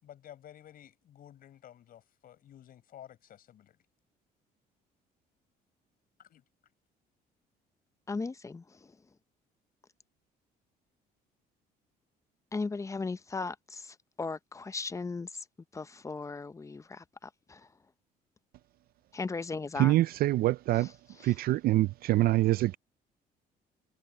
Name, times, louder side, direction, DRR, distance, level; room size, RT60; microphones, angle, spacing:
voice 1, 0.0-3.8 6.2-6.4, left 11 dB, 60° left, 5.4 m, -53 dB
voice 2, 8.1-8.6 12.5-15.3 15.7-17.6 19.1-20.0, left 4 dB, 20° left, 0.6 m, -37 dB
voice 3, 19.8-20.9 21.2-22.8, right 16 dB, 60° right, 0.4 m, -25 dB
cardioid pair, 110°, 17 cm